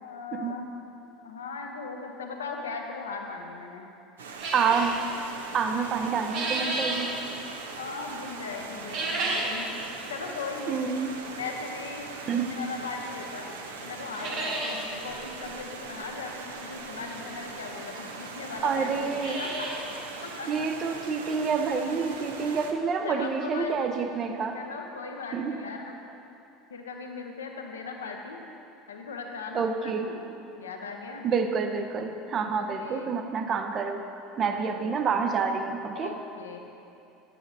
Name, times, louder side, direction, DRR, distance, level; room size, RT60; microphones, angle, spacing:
voice 1, 0.0-0.7 1.0-3.9 7.8-9.7 10.1-10.8 11.4-13.5 13.8-19.7 20.2-20.7 23.0-23.8 24.5-26.0 26.7-28.4 28.9-30.2 30.6-31.3 32.5-33.2 34.5-35.2 35.9-36.6, left 4 dB, 85° left, 2 dB, 0.7 m, -38 dB
Stream, 4.2-22.7, right 3 dB, 85° right, 0.6 m, -41 dB
sound 1, 4.4-5.0 5.9-7.1 8.8-9.6 10.0-10.1 10.9-11.0 12.7-12.8 13.2-13.3 13.6-13.7 14.0-14.8 15.1-15.2 15.4-15.5 17.1-17.2 18.0-18.1 18.2-18.3 18.9-19.9 20.2-20.3 20.8-20.9 21.3-21.4 23.1-23.2 23.4-23.5 23.9-24.0, right 2 dB, 60° right, 1.4 m, -32 dB
voice 2, 4.5-5.0 5.5-7.1 10.7-11.1 12.3-12.5 18.6-19.4 20.5-24.6 25.3-25.6 29.5-30.1 31.2-34.0 34.4-36.1, right 5 dB, 40° right, 6 dB, 0.6 m, -28 dB
9.7 x 7.5 x 2.6 m, 2.7 s
hypercardioid pair, 75°, 0 cm